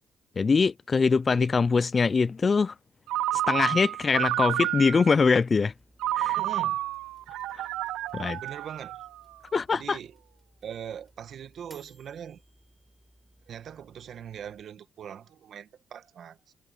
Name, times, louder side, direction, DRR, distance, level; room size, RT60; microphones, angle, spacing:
voice 1, 0.4-2.7 3.5-5.7 6.1-6.4 7.5-7.7 8.1-8.4 9.5-10.0, left 4 dB, 35° left, 0.4 m, -23 dB
Ringtone, 3.1-5.2 6.0-9.3, right 14 dB, 90° right, 0.4 m, -30 dB
sound 1, 5.6-14.6, right 1 dB, 5° right, 5.0 m, -61 dB
voice 2, 6.3-6.8 8.4-9.0 9.7-10.1 10.6-12.4 13.5-16.5, right 9 dB, 65° right, 1.3 m, -41 dB
cardioid pair, 90°, 0 cm